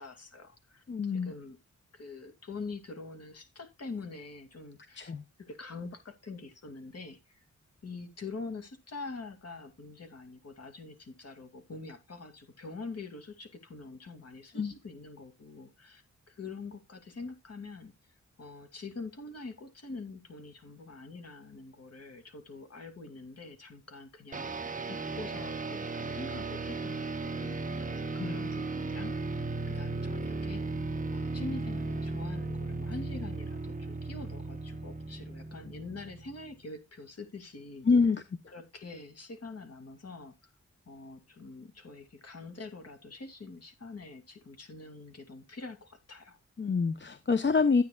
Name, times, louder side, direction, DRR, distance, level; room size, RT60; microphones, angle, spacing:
voice 1, 0.0-1.6 1.9-5.1 5.5-7.4 7.8-17.9 18.4-30.6 31.1-37.9 38.5-40.5 40.9-46.4, left 3 dB, 55° left, 7 dB, 2.5 m, -45 dB
voice 2, 0.9-1.3 5.0-5.2 14.6-14.7 28.2-28.3 37.9-38.2 46.6-47.8, left 4 dB, 40° left, 10 dB, 0.9 m, -26 dB
sound 1, 24.3-36.5, right 3 dB, 25° right, 1.0 m, -36 dB
13.0 x 9.0 x 2.4 m, 0.22 s
wide cardioid pair, 110°, 30 cm